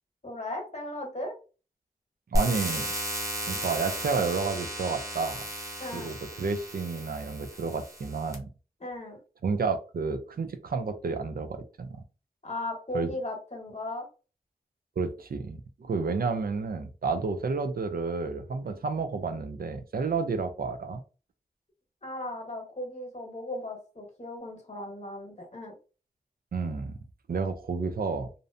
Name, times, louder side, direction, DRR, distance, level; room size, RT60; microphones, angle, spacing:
voice 1, 0.2-1.3 5.8-6.1 8.8-9.2 12.4-14.1 22.0-25.7, left 1 dB, 45° left, 1.0 m, -37 dB
sound 1, 2.3-8.3, equal, 20° right, 0.8 m, -34 dB
voice 2, 2.3-2.9 3.5-5.4 5.9-8.5 9.4-12.0 12.9-13.1 15.0-21.0 26.5-27.0 27.3-28.3, right 4 dB, 70° right, 0.4 m, -31 dB
2.6 x 2.0 x 2.5 m
cardioid pair, 40°, 16 cm